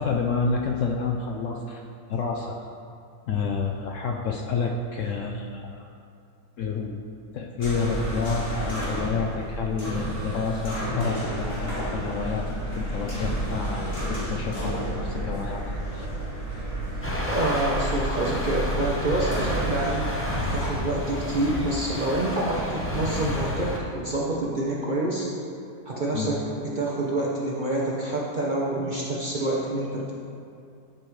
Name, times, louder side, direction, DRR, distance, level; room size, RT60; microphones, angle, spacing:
voice 1, 0.0-1.8 2.1-2.5 3.3-5.9 6.6-7.0 7.3-15.6 15.9-16.1 26.1-26.4, left 4 dB, 70° left, 1 dB, 0.8 m, -29 dB
sound 1, 7.6-20.7, right 1 dB, 45° left, 2.2 m, -31 dB
sound 2, 17.0-23.8, left 1 dB, 15° left, 0.5 m, -31 dB
voice 2, 17.3-20.1 20.5-25.3 25.9-30.1, right 2 dB, 45° right, -4 dB, 0.7 m, -27 dB
11.0 x 5.3 x 3.1 m, 2.4 s
omnidirectional pair, 1.7 m